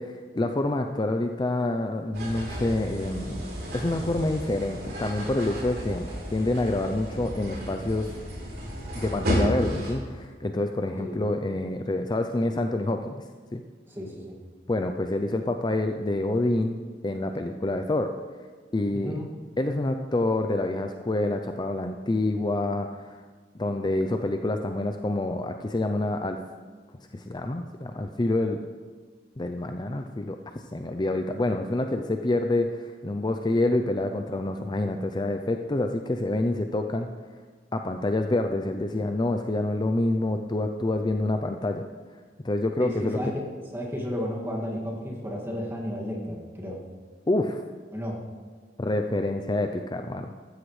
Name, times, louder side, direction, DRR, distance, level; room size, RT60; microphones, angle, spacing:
voice 1, 0.0-3.5 3.7-8.1 8.9-13.2 13.5-13.6 14.7-18.1 18.7-19.1 19.6-23.2 23.6-26.4 27.1-28.6 29.4-30.4 30.7-37.1 37.7-41.8 42.4-43.2 47.3-47.6 48.8-50.3, left 2 dB, 25° left, 6 dB, 0.5 m, -27 dB
sound 1, 2.1-9.9, equal, 60° right, 3.9 m, -32 dB
voice 2, 13.9-14.4 18.9-19.3 42.8-43.5 43.7-46.8 47.9-48.2, equal, 15° right, -2 dB, 2.1 m, -33 dB
15.0 x 13.0 x 3.2 m, 1.5 s
head